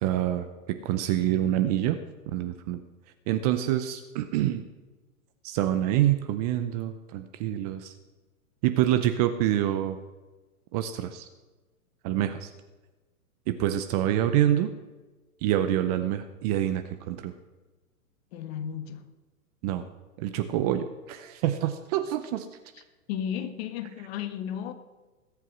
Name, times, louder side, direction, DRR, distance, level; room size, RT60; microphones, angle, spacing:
voice 1, 0.0-2.0 2.3-2.8 3.3-4.6 5.4-7.9 8.6-10.0 10.7-11.3 12.0-12.5 13.5-14.7 15.4-17.3 19.6-19.8 20.2-22.5, right 12 dB, 25° right, 0.6 m, -26 dB
voice 2, 18.3-19.1 23.1-24.7, left 9 dB, 40° left, 1.6 m, -34 dB
20.0 x 8.2 x 6.2 m
hypercardioid pair, 135°, 46 cm